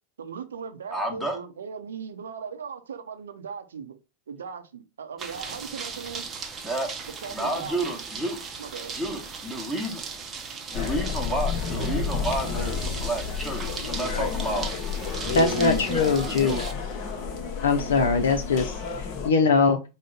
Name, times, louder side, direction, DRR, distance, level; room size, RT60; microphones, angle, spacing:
voice 1, 0.2-4.0 4.3-6.3 7.2-8.0 8.6-8.9, right 6 dB, 65° right, 0.6 m, -38 dB
voice 2, 0.9-1.4 6.6-6.9 7.3-8.4 8.9-10.0 10.7-14.7 15.6-16.6, equal, ahead, 1.1 m, -30 dB
Fire Ambience, 5.2-16.7, right 5 dB, 20° right, 0.7 m, -38 dB
sound 1, 10.7-19.3, left 5 dB, 35° left, 0.8 m, -31 dB
voice 3, 15.3-16.8 17.6-20.0, left 4 dB, 65° left, 0.5 m, -23 dB
4.9 x 2.1 x 3.7 m
figure-of-eight pair, 90°, 0 cm